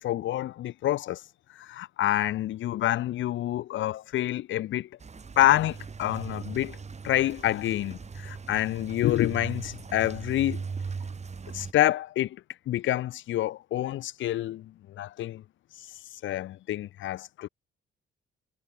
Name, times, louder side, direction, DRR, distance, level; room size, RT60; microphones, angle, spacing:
voice 1, 0.0-4.9 5.4-6.8 7.0-10.6 11.5-14.7 15.0-15.4 15.7-17.5, left 14 dB, 75° left, 0.8 m, -28 dB
sound 1, 5.0-11.7, right 5 dB, 35° right, 4.2 m, -39 dB
cardioid pair, 90°, 20 cm